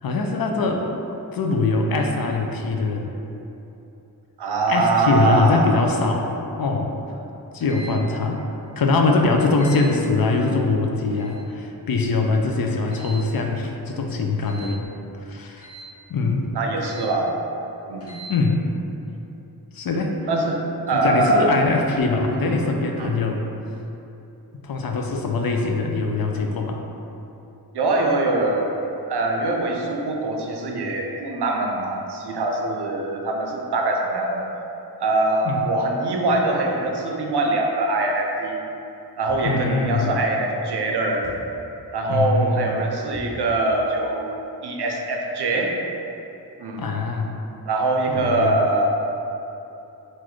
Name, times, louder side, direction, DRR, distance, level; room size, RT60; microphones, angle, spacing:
voice 1, 0.0-0.8 1.3-3.1 4.7-6.3 6.6-6.9 7.5-8.4 8.8-14.8 15.2-15.7 16.1-16.4 18.3-18.6 19.7-20.1 20.9-23.5 24.6-26.8 35.5-35.7 39.4-40.1 42.1-42.8 46.8-47.4 48.1-48.6, left 3 dB, 65° left, 2 dB, 0.5 m, -22 dB
voice 2, 4.4-5.7 16.5-17.3 17.9-18.1 20.3-20.6 20.9-21.4 22.3-22.6 23.0-23.1 27.7-28.7 29.1-34.5 35.0-38.6 39.2-41.2 41.9-44.3 44.6-45.7 46.6-46.9 47.7-48.9, right 2 dB, 90° right, 0 dB, 0.5 m, -23 dB
sound 1, 7.6-7.9 9.5-9.8 11.1-11.4 12.9-13.2 14.4-14.7 15.6-15.9 16.8-17.1 18.0-18.3, right 2 dB, 40° left, 1.5 m, -41 dB
sound 2, 39.3-39.7 41.2-41.6 43.1-43.5, equal, 5° left, 0.7 m, -41 dB
3.8 x 2.5 x 3.0 m, 2.9 s
wide cardioid pair, 50°, 39 cm